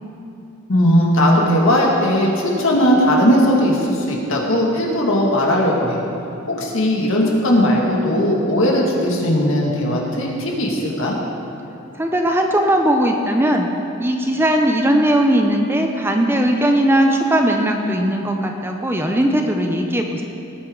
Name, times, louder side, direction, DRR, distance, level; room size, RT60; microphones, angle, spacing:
voice 1, 0.7-6.0 6.5-11.2, equal, 65° left, -2 dB, 2.1 m, -18 dB
voice 2, 12.0-13.7 14.0-20.2, right 1 dB, 10° right, 3 dB, 0.6 m, -18 dB
18.5 x 8.7 x 3.9 m, 2.8 s
head